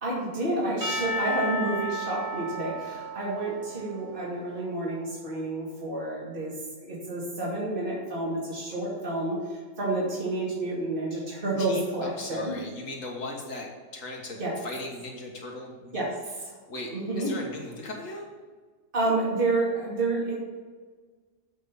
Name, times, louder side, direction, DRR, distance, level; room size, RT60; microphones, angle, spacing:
voice 1, 0.0-12.5 14.4-14.5 15.9-16.2 16.4-16.6 16.9-17.3 18.9-20.3, right 2 dB, 40° right, -5 dB, 2.6 m, -29 dB
Percussion / Church bell, 0.8-5.0, right 1 dB, 15° right, 1.8 m, -34 dB
voice 2, 11.6-16.0 16.7-18.3, left 2 dB, 70° left, 0 dB, 2.1 m, -38 dB
7.9 x 5.5 x 6.9 m, 1.5 s
omnidirectional pair, 1.4 m